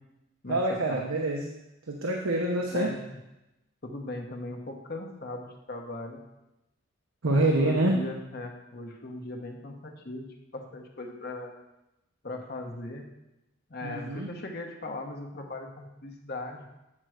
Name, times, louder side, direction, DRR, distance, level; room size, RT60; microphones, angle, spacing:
voice 1, 0.5-1.5 1.9-2.9 7.2-7.9 13.8-14.3, right 2 dB, 85° right, 0 dB, 0.9 m, -26 dB
voice 2, 2.7-3.0 3.8-6.2 7.3-11.6 12.2-13.1 13.7-16.7, left 2 dB, 50° left, 2 dB, 1.1 m, -38 dB
8.7 x 4.5 x 6.4 m, 0.93 s
head